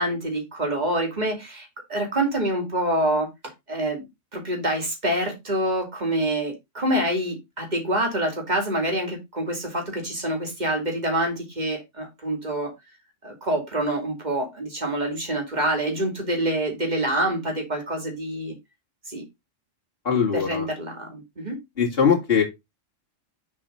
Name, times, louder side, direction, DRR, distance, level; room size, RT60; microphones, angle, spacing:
voice 1, 0.0-3.3 3.7-4.1 4.3-12.7 13.2-18.6 19.0-19.2 20.3-21.6, right 1 dB, 35° right, 2 dB, 2.5 m, -26 dB
voice 2, 20.0-20.7 21.8-22.4, left 7 dB, 45° left, -2 dB, 2.7 m, -21 dB
6.8 x 4.3 x 5.2 m, 0.21 s
omnidirectional pair, 1.3 m